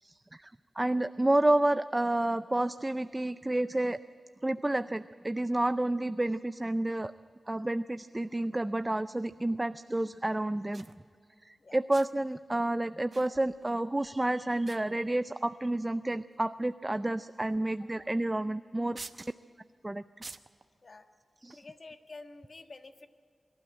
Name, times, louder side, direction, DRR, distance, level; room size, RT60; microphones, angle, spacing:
voice 1, 0.0-4.0 4.4-7.1 7.5-10.9 11.4-19.0 19.8-20.0 21.4-21.6, right 1 dB, 20° right, 12 dB, 0.4 m, -30 dB
sound 1, 10.4-10.5 10.7-11.0 11.9-12.3 13.1-13.8 14.0-14.3 14.7-15.3 16.1-16.2 17.4-17.6 18.0-18.1 19.0-19.3 20.2-20.6 21.5-21.7, right 3 dB, 55° right, 0.9 m, -48 dB
voice 2, 21.6-23.1, left 3 dB, 55° left, 6 dB, 1.5 m, -49 dB
24.0 x 12.5 x 8.8 m, 2.3 s
cardioid pair, 60°, 0 cm